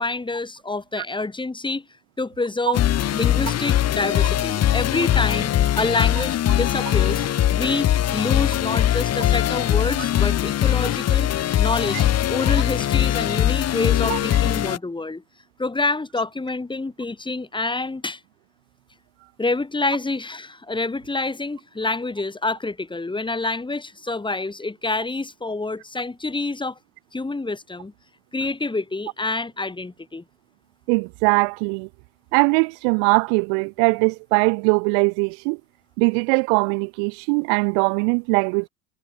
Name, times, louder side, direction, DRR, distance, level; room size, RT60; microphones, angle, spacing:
voice 1, 0.0-1.8 2.2-2.8 3.1-7.2 7.5-15.2 15.6-18.2 19.4-26.8 27.1-27.9 28.3-30.2, left 3 dB, 10° left, 6.1 m, -27 dB
sound 1, 2.7-14.8, left 12 dB, 40° left, 2.6 m, -21 dB
voice 2, 30.9-31.9 32.3-35.6 36.0-38.7, right 40 dB or more, 65° right, 1.1 m, -21 dB
hypercardioid pair, 95°, 39 cm